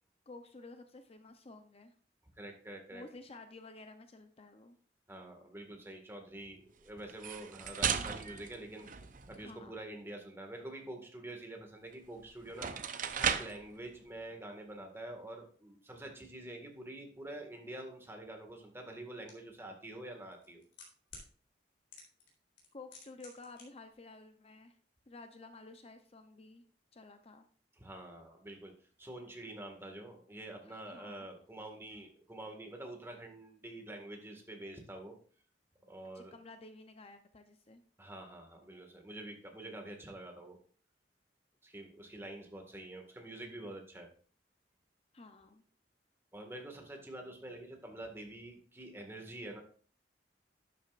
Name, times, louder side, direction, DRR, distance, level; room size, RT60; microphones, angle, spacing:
voice 1, 0.3-1.9 2.9-4.8 9.4-9.8 22.7-24.8 25.1-26.6 26.9-27.5 30.6-31.3 36.1-37.8 45.1-45.6, left 3 dB, 35° left, 7 dB, 0.7 m, -52 dB
voice 2, 2.4-3.0 5.1-8.9 9.3-12.7 13.2-20.6 27.8-28.7 29.0-35.2 35.9-36.4 38.0-40.6 41.6-44.1 46.3-49.6, right 1 dB, 15° right, 2 dB, 1.8 m, -47 dB
sound 1, 7.1-9.5 11.9-12.0 12.5-13.7, right 7 dB, 50° right, 0.7 m, -36 dB
sound 2, 19.3-19.4 20.3-21.3 21.9-22.3 22.6-23.6 23.9-24.0, left 5 dB, 75° left, 3.9 m, -51 dB
12.0 x 8.5 x 2.5 m, 0.43 s
head